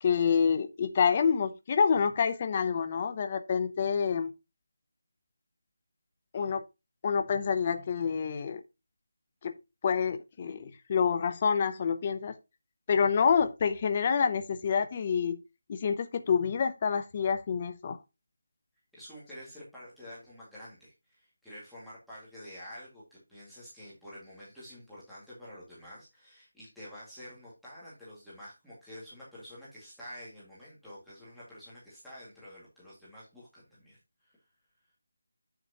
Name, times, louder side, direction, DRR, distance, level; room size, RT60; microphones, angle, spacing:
voice 1, 0.0-4.3 6.3-6.6 7.0-8.6 9.4-9.5 9.8-12.4 12.9-15.4 15.7-18.0, left 6 dB, 20° left, 0.7 m, -27 dB
voice 2, 18.9-34.4, equal, ahead, 2.1 m, -49 dB
9.3 x 6.0 x 2.9 m
figure-of-eight pair, 175°, 0 cm